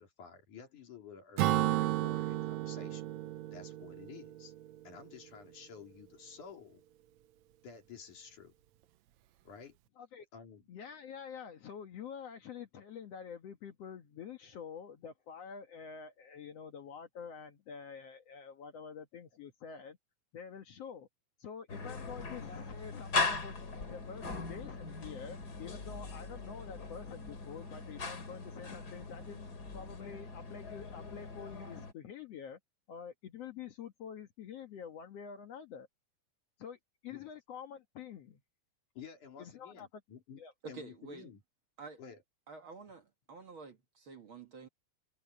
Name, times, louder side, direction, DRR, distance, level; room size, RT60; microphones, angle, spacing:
voice 1, 0.0-3.1 3.5-4.5 4.8-6.8 7.6-8.5 9.4-9.8 10.3-10.7 37.1-37.3 38.9-40.4 40.7-41.4 42.0-42.2, left 6 dB, 80° left, 4.8 m, -52 dB
Acoustic guitar / Strum, 1.4-5.0, right 15 dB, 75° right, 2.0 m, -33 dB
voice 2, 10.0-10.3 10.7-20.0 20.3-21.1 21.4-29.5 29.7-32.6 32.9-35.9 36.6-38.4 39.4-40.0 40.4-40.5, left 7 dB, 60° left, 2.2 m, -47 dB
sound 1, 21.7-31.9, left 3 dB, 35° left, 2.8 m, -40 dB
voice 3, 40.6-41.3 41.8-42.0 42.5-44.7, right 4 dB, 45° right, 2.3 m, -49 dB
omnidirectional pair, 3.5 m